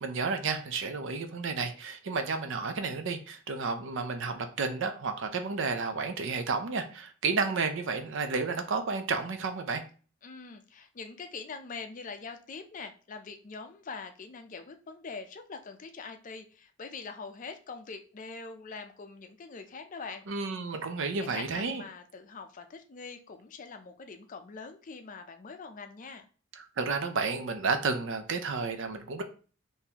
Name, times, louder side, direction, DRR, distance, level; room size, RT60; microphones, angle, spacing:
voice 1, 0.0-9.8 20.3-21.8 26.6-29.2, right 4 dB, 60° right, 7 dB, 0.5 m, -31 dB
voice 2, 10.2-20.2 21.3-26.3, left 4 dB, 40° left, 7 dB, 0.4 m, -43 dB
3.8 x 2.7 x 2.8 m, 0.38 s
head